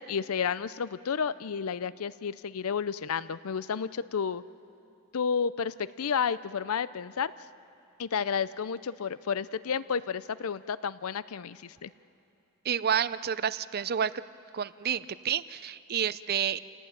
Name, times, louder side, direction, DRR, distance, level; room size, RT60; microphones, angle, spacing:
voice 1, 0.0-4.4 5.1-7.3 8.0-11.9, left 6 dB, 70° left, 17 dB, 0.5 m, -31 dB
voice 2, 12.6-14.2 14.5-16.6, right 8 dB, 45° right, 16 dB, 0.5 m, -29 dB
29.0 x 17.5 x 9.0 m, 2.7 s
head